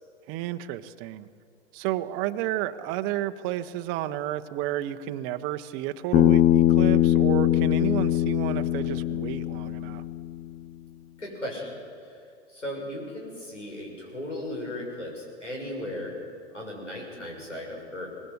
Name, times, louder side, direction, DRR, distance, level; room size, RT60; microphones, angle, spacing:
voice 1, 0.2-1.3 1.7-10.0, right 13 dB, 35° right, 9 dB, 0.9 m, -31 dB
Bass guitar, 6.1-10.5, left 12 dB, 25° left, 0.6 m, -22 dB
voice 2, 11.2-12.2 12.5-16.2 16.5-18.1, left 1 dB, 90° left, -2 dB, 7.0 m, -36 dB
24.0 x 19.5 x 8.0 m, 2.4 s
figure-of-eight pair, 110°, 35 cm